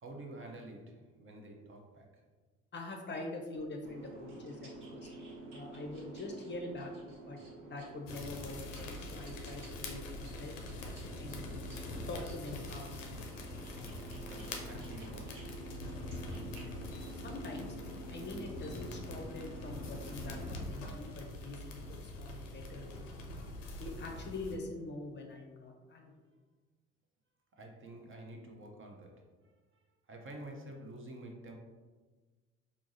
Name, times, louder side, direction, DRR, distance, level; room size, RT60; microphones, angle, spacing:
voice 1, 0.0-2.2 14.2-15.6 27.5-31.5, right 1 dB, 35° right, 1 dB, 0.6 m, -49 dB
voice 2, 2.7-5.1 5.5-6.9 7.3-10.5 11.2-11.4 12.1-12.9 17.2-17.8 18.1-23.1 23.8-26.1, left 2 dB, 30° left, 1 dB, 0.6 m, -44 dB
sound 1, 3.5-15.5 15.8-17.2, right 2 dB, 60° right, 1.1 m, -60 dB
Boat Water vehicle, 3.8-20.6, right 1 dB, 80° right, 0.6 m, -49 dB
sound 2, 8.1-24.6, left 2 dB, 85° left, 0.5 m, -44 dB
4.5 x 2.0 x 2.6 m, 1.3 s
hypercardioid pair, 50°, 36 cm